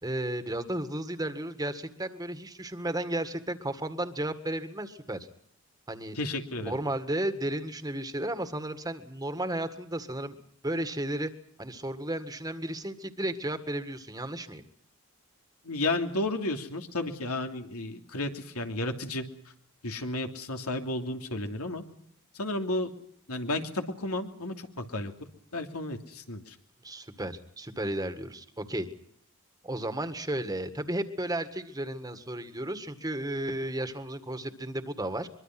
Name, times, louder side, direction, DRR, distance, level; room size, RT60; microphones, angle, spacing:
voice 1, 0.0-5.2 5.9-6.2 6.6-11.3 11.6-14.6 26.8-28.9 29.6-35.3, right 1 dB, 15° right, 10 dB, 1.9 m, -33 dB
voice 2, 6.1-6.8 15.6-19.2 19.8-21.8 22.3-22.9 23.3-25.1 25.5-26.5, left 2 dB, 85° left, 5 dB, 3.0 m, -32 dB
24.0 x 23.0 x 6.0 m, 0.66 s
head